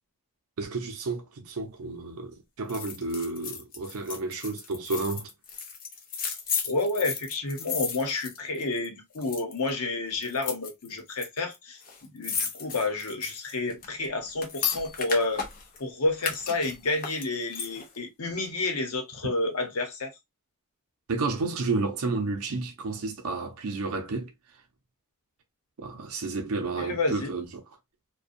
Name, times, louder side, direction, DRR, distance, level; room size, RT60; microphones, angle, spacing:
voice 1, 0.6-5.3 21.1-24.3 25.8-27.5, right 3 dB, 70° right, 0.5 m, -31 dB
sound 1, 2.7-8.9 9.1-9.7 10.2-11.3 11.5-11.6 11.8-15.8 16.2-18.0 18.3-18.4, left 6 dB, 40° left, 0.6 m, -34 dB
voice 2, 6.6-15.4 15.8-20.1 26.8-27.3, left 2 dB, 80° left, 0.9 m, -30 dB
2.5 x 2.2 x 2.5 m
head